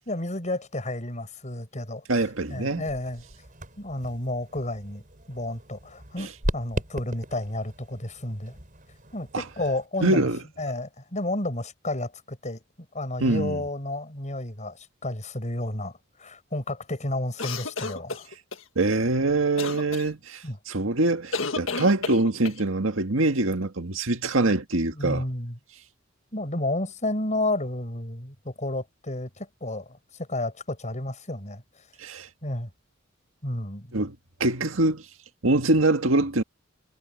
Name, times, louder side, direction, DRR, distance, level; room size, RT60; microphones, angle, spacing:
voice 1, 0.1-3.2 3.8-5.0 5.3-8.5 9.1-10.3 10.6-12.6 12.9-15.9 16.2-18.3 20.4-20.6 24.9-25.6 26.3-31.6 32.4-32.7 33.4-33.9, left 1 dB, 35° left, 5.9 m, -31 dB
sound 1, 2.1-9.9, right 1 dB, 40° right, 6.1 m, -38 dB
voice 2, 2.1-2.8 6.2-6.3 9.3-9.4 10.0-10.4 13.2-13.6 18.8-25.2 32.0-32.3 33.9-34.2 34.4-35.0 35.4-36.4, right 2 dB, 80° right, 1.9 m, -24 dB
sound 2, 17.4-18.6 19.6-20.1 21.3-22.6, left 4 dB, 75° left, 1.8 m, -31 dB
head